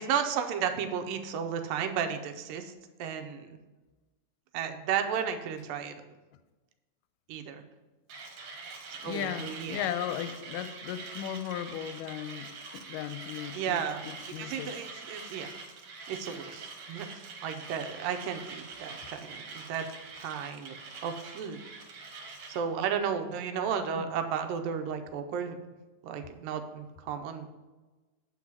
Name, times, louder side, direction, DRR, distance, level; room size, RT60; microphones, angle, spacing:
voice 1, 0.0-2.7 3.0-3.6 4.5-5.9 7.3-7.6 9.0-9.9 13.5-14.0 14.4-15.5 16.1-19.9 20.2-21.6 22.5-25.6 26.0-27.5, right 7 dB, 85° right, 2.4 m, -33 dB
Mechanisms, 8.1-22.6, right 4 dB, 65° right, 2.2 m, -44 dB
voice 2, 9.0-14.8 19.0-19.1 24.0-24.1, left 10 dB, 80° left, 2.0 m, -37 dB
7.6 x 4.7 x 7.2 m
omnidirectional pair, 4.0 m